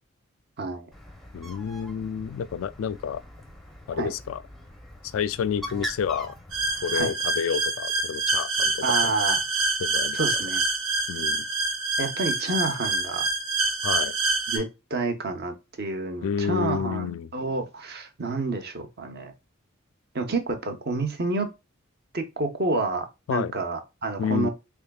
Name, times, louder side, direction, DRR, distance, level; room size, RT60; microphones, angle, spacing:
Bird, 0.9-7.0, equal, ahead, 0.6 m, -41 dB
voice 1, 1.3-3.2 3.9-4.4 5.1-6.3 6.8-9.1 9.8-10.2 11.1-11.4 13.8-14.1 16.2-17.3 23.3-23.5 24.2-24.5, left 7 dB, 75° left, 0.3 m, -29 dB
sound 1, 6.5-14.6, right 3 dB, 90° right, 1.2 m, -26 dB
voice 2, 8.8-9.4 10.1-10.6 12.0-13.3 14.5-19.3 20.1-21.5 22.1-24.5, right 3 dB, 50° right, 0.8 m, -29 dB
3.5 x 3.5 x 2.2 m
head